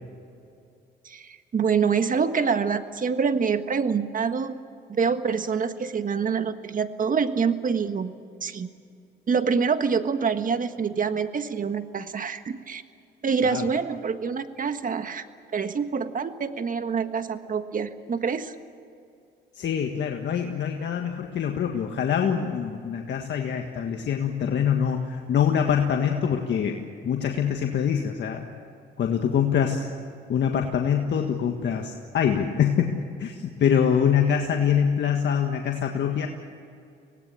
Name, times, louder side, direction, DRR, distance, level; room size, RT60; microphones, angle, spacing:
voice 1, 1.0-4.6 4.9-8.1 8.4-8.7 9.3-12.8 13.2-15.3 15.5-18.5, right 6 dB, 45° right, 9 dB, 1.5 m, -26 dB
voice 2, 19.5-26.8 27.0-28.5 29.0-29.9 30.3-36.3, left 8 dB, 65° left, 3 dB, 1.7 m, -24 dB
25.5 x 18.5 x 8.5 m, 2.5 s
cardioid pair, 90°, 20 cm